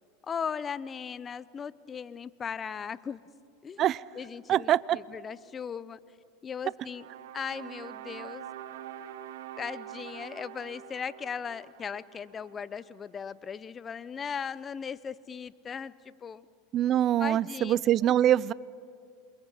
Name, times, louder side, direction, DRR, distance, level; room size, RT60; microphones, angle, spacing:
voice 1, 0.2-3.2 3.6-3.9 4.1-6.0 6.4-7.1 7.3-8.5 9.6-16.5 17.2-18.1, left 6 dB, 25° left, 18 dB, 0.7 m, -38 dB
voice 2, 4.5-5.0 16.7-18.5, right 11 dB, 40° right, 22 dB, 0.5 m, -24 dB
sound 1, 6.8-13.1, right 10 dB, 75° right, 1.0 m, -45 dB
28.0 x 23.0 x 5.7 m, 2.3 s
hypercardioid pair, 100°, 0 cm